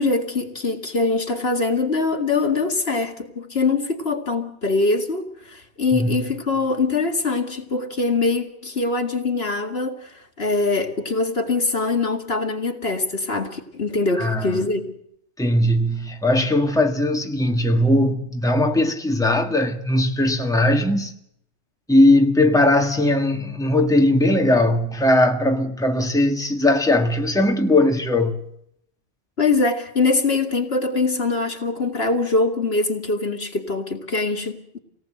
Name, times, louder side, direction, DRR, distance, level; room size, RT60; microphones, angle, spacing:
voice 1, 0.0-10.1 10.4-14.9 29.4-34.8, left 3 dB, 65° left, 2.4 m, -23 dB
voice 2, 5.9-6.2 14.2-14.6 15.4-21.1 21.9-28.5, left 1 dB, 5° left, 1.9 m, -19 dB
27.0 x 18.5 x 7.8 m
omnidirectional pair, 1.1 m